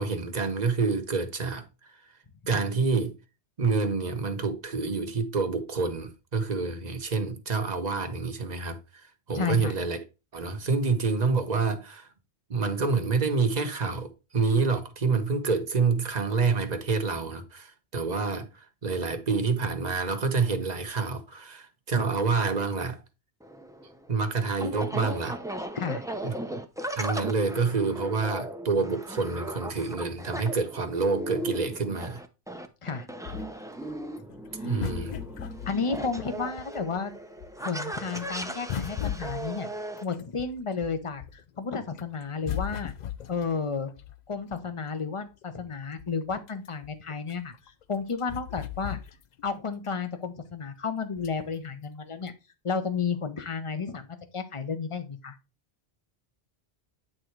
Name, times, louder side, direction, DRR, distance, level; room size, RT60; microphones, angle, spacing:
voice 1, 0.0-1.7 2.5-3.2 3.6-10.0 10.3-12.1 12.5-23.0 24.1-25.4 26.2-26.3 27.0-32.2 34.6-35.2, right 4 dB, 40° right, 1.1 m, -27 dB
voice 2, 9.3-9.7 25.7-26.0 32.8-33.1 34.6-34.9 35.7-37.1 37.6-39.7 40.0-42.9 43.3-43.9 44.3-47.5 47.9-49.0 49.4-52.3 52.6-54.1 54.3-55.4, left 5 dB, 30° left, 0.9 m, -32 dB
sound 1, 23.4-40.0, right 1 dB, 5° right, 0.5 m, -37 dB
sound 2, 33.2-37.0 37.4-41.5 41.9-44.8 45.4-45.5 45.7-49.6 49.9-50.0 51.2-51.6 52.2-52.3, left 10 dB, 55° left, 0.5 m, -38 dB
8.8 x 3.8 x 4.6 m
omnidirectional pair, 1.1 m